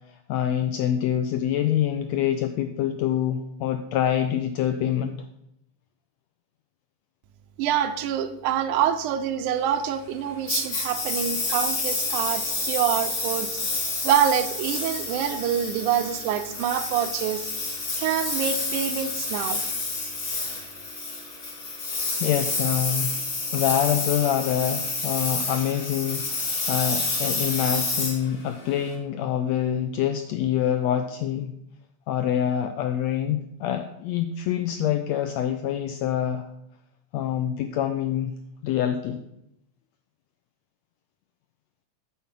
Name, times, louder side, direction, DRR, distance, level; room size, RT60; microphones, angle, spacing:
voice 1, 0.1-5.2 22.2-23.2 23.5-31.5 32.1-36.5 37.1-38.3 38.6-39.2, left 10 dB, 85° left, 7 dB, 1.5 m, -26 dB
voice 2, 7.6-17.5 18.0-19.6, right 9 dB, 90° right, 9 dB, 2.1 m, -26 dB
Engine, 10.5-28.9, left 3 dB, 40° left, 1.0 m, -29 dB
9.4 x 4.3 x 7.3 m, 0.80 s
omnidirectional pair, 3.6 m